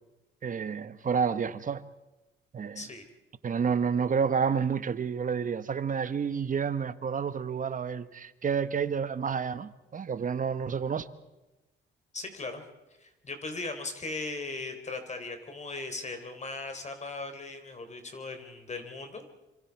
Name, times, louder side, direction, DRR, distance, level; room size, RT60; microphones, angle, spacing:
voice 1, 0.4-1.9 2.5-2.9 3.4-11.1, right 6 dB, 40° right, 1.2 m, -29 dB
voice 2, 12.1-12.6 13.0-19.3, left 3 dB, 35° left, 3.8 m, -38 dB
27.0 x 25.5 x 4.7 m
cardioid pair, 90°, 20 cm